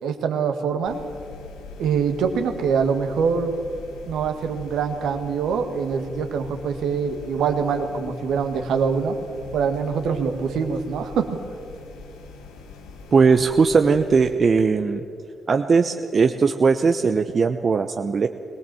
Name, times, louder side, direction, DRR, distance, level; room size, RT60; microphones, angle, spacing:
voice 1, 0.0-1.0 1.8-3.5 4.1-9.2 9.5-11.3, right 6 dB, 75° right, 6 dB, 1.8 m, -24 dB
sound 1, 0.8-14.4, left 4 dB, 80° left, 1.8 m, -42 dB
voice 2, 13.1-15.0 15.5-18.3, right 5 dB, 50° right, 7 dB, 0.9 m, -19 dB
22.0 x 19.0 x 7.7 m, 2.4 s
hypercardioid pair, 45°, 0 cm